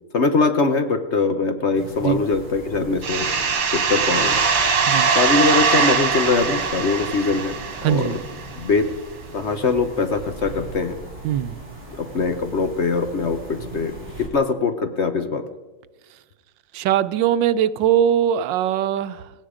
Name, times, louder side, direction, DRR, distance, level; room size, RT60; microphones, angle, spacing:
voice 1, 0.1-4.4 5.1-8.2 8.6-8.9 9.3-11.0 11.9-15.4, left 4 dB, 45° left, 8 dB, 1.0 m, -22 dB
sound 1, 1.7-14.3, right 1 dB, 30° right, 4.3 m, -39 dB
sound 2, 3.0-8.5, right 5 dB, 70° right, 2.3 m, -21 dB
voice 2, 7.8-8.2 11.2-11.6 16.7-19.3, right 10 dB, 90° right, 15 dB, 1.4 m, -21 dB
17.0 x 17.0 x 5.0 m, 1.2 s
omnidirectional pair, 1.9 m